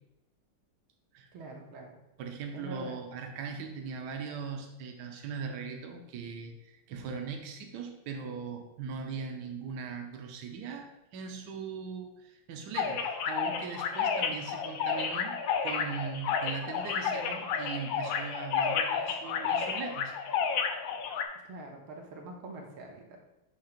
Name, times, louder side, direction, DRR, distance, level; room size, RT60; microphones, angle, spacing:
voice 1, 1.3-2.0 2.5-3.0 21.5-23.2, right 2 dB, 80° right, 0 dB, 2.0 m, -44 dB
voice 2, 2.2-15.4 15.6-20.1, right 5 dB, 65° right, 3 dB, 1.1 m, -40 dB
sound 1, 12.7-21.2, left 6 dB, 75° left, 1.3 m, -31 dB
6.6 x 2.9 x 5.8 m, 0.91 s
omnidirectional pair, 2.3 m